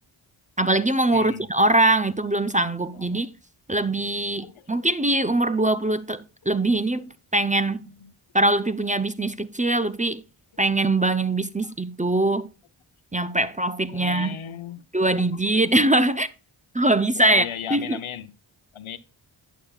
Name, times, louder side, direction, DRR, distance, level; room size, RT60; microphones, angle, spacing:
voice 1, 0.6-3.3 3.7-7.9 8.3-10.2 10.6-12.5 13.1-14.4 14.9-16.3 16.7-17.4 17.7-18.0, right 2 dB, 15° right, 0.6 m, -22 dB
voice 2, 1.1-1.5 2.9-3.3 4.4-4.7 6.6-6.7 7.8-8.1 11.6-11.7 13.9-14.8 15.3-15.4 17.2-18.3 18.7-19.0, left 9 dB, 70° left, 0.8 m, -36 dB
11.0 x 7.3 x 2.3 m
cardioid pair, 40°, 50 cm